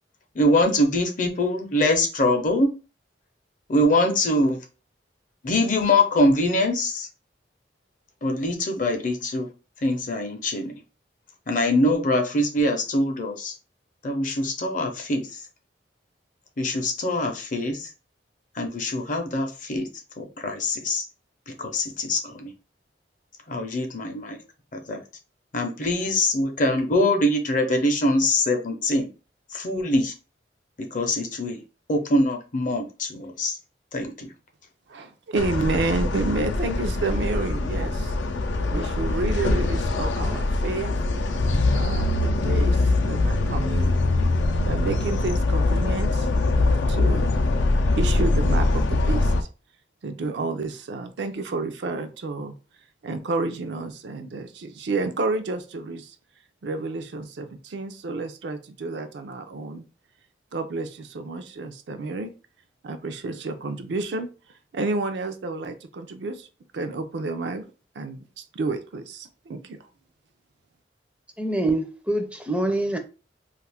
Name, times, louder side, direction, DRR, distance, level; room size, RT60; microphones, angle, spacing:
voice 1, 0.4-2.7 3.7-4.6 5.4-7.1 8.2-9.5 9.8-10.7 11.5-13.5 14.0-15.2 16.6-17.9 18.6-19.9 20.2-21.0 21.6-22.5 23.5-24.4 24.7-25.0 25.5-29.1 29.5-30.1 30.9-31.6 31.9-33.5 33.9-34.3, left 1 dB, 45° left, 0.6 m, -23 dB
voice 2, 34.9-38.2 38.7-40.9 41.7-44.0 44.6-46.3 46.6-47.3 48.0-49.3 50.0-52.5 53.0-56.1 56.6-59.8 60.5-62.3 62.8-64.3 64.7-66.5 66.7-67.7 68.0-69.8, right 3 dB, 70° right, 0.4 m, -30 dB
sound 1, 35.4-49.4, left 2 dB, 90° left, 0.5 m, -23 dB
voice 3, 71.4-73.0, right 1 dB, 5° right, 0.4 m, -25 dB
2.4 x 2.4 x 3.4 m
head